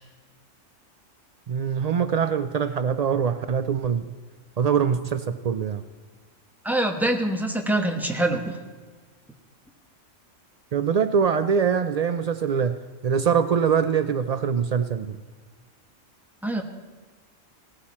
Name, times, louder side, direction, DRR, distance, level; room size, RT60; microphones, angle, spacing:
voice 1, 1.5-4.0 4.6-5.8 10.7-12.8 13.0-15.2, right 7 dB, 85° right, 11 dB, 0.3 m, -23 dB
voice 2, 6.6-8.6 16.4-16.6, right 1 dB, ahead, 3 dB, 1.1 m, -24 dB
17.5 x 14.5 x 4.3 m, 1.4 s
omnidirectional pair, 1.3 m